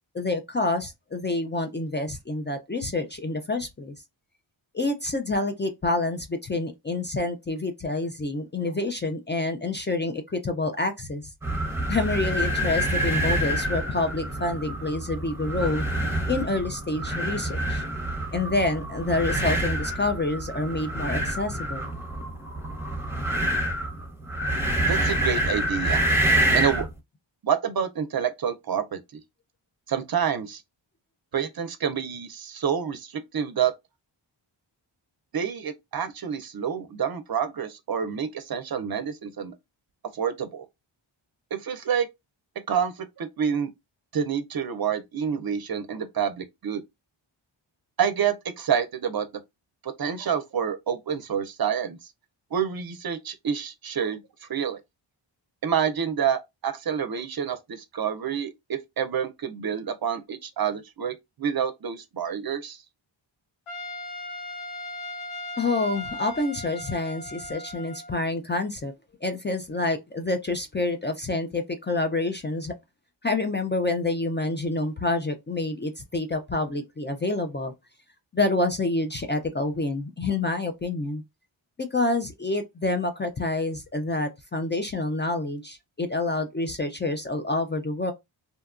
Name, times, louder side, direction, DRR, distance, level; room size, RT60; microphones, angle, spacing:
voice 1, 0.1-4.0 4.7-11.3 11.9-15.8 16.2-17.8 18.3-21.9 65.6-68.9 69.2-72.7 73.2-77.7 78.3-81.2 81.8-88.1, left 2 dB, 25° left, 0.4 m, -28 dB
sound 1, 11.4-26.9, right 1 dB, 5° right, 0.8 m, -27 dB
voice 2, 24.9-26.1 26.5-26.9 27.4-29.0 29.9-30.6 31.3-33.7 35.3-39.5 40.1-40.7 41.5-42.1 42.7-43.7 44.1-46.8 48.0-49.3 49.8-52.0 52.5-54.2 54.5-54.8 55.6-62.8, right 8 dB, 50° right, 0.5 m, -28 dB
Trumpet, 63.7-68.3, left 2 dB, 85° left, 0.9 m, -38 dB
2.8 x 2.2 x 2.4 m
cardioid pair, 65°, 48 cm